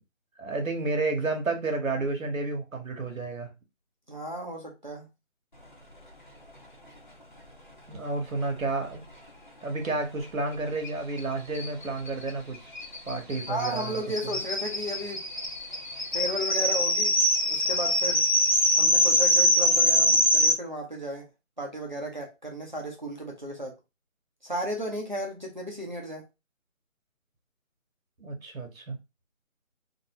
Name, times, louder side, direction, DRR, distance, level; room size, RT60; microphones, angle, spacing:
voice 1, 0.4-3.5 7.9-9.0 9.6-12.6 13.1-14.0 28.2-29.0, right 3 dB, 90° right, 1.2 m, -31 dB
voice 2, 4.1-5.1 13.5-15.3 16.1-17.2 17.5-18.2 18.7-21.3 21.6-23.8 24.4-26.3, equal, 35° right, 0.7 m, -34 dB
sound 1, 10.8-10.9 11.2-11.3 11.5-20.5, left 1 dB, 40° left, 0.7 m, -24 dB
2.6 x 2.6 x 2.9 m
figure-of-eight pair, 180°, 39 cm